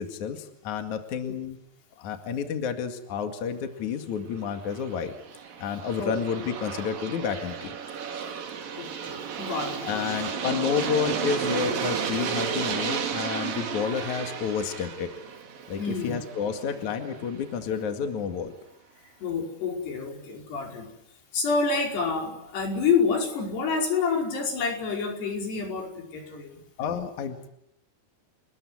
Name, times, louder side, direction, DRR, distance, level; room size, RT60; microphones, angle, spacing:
voice 1, 0.0-1.6 2.0-5.1 5.6-7.7 9.8-15.1 15.7-18.5 26.8-27.5, left 7 dB, 55° left, 6 dB, 3.2 m, -30 dB
Aircraft, 4.5-17.3, right 7 dB, 60° right, 4.1 m, -33 dB
voice 2, 8.8-10.2 15.8-16.8 19.2-21.0 21.3-26.6, left 5 dB, 90° left, 2 dB, 7.3 m, -28 dB
30.0 x 21.0 x 9.5 m, 0.78 s
omnidirectional pair, 4.6 m